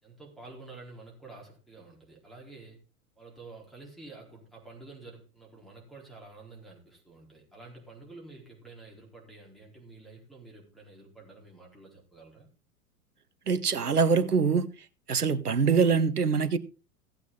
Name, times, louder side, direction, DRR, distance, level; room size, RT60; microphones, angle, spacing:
voice 1, 0.0-2.8 3.2-12.5, right 3 dB, ahead, 4.1 m, -49 dB
voice 2, 13.5-14.7 15.1-16.6, right 5 dB, 80° right, 1.0 m, -24 dB
16.5 x 8.3 x 3.8 m
figure-of-eight pair, 95°, 46 cm